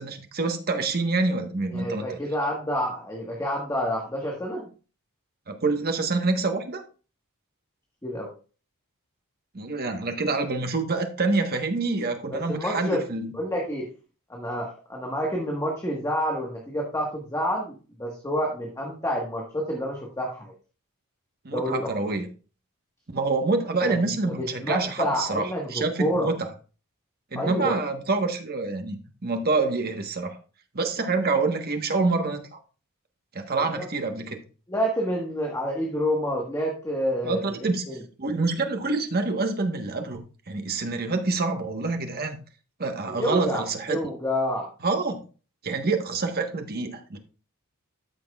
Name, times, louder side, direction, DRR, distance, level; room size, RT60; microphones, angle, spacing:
voice 1, 0.0-2.2 5.5-6.8 9.5-13.3 21.4-22.3 23.1-26.5 27.3-29.0 29.2-30.4 30.7-32.6 33.3-34.4 37.2-37.9 38.2-42.4 42.8-44.0 44.8-45.2 45.6-47.2, right 3 dB, 45° right, 5 dB, 1.3 m, -27 dB
voice 2, 1.7-4.7 8.0-8.3 12.3-13.0 13.3-13.9 14.3-20.5 21.5-22.1 23.8-26.3 27.4-27.8 33.7-33.9 34.7-38.0 43.2-44.7, equal, 15° left, -1 dB, 1.5 m, -28 dB
13.0 x 6.1 x 2.4 m, 0.36 s
head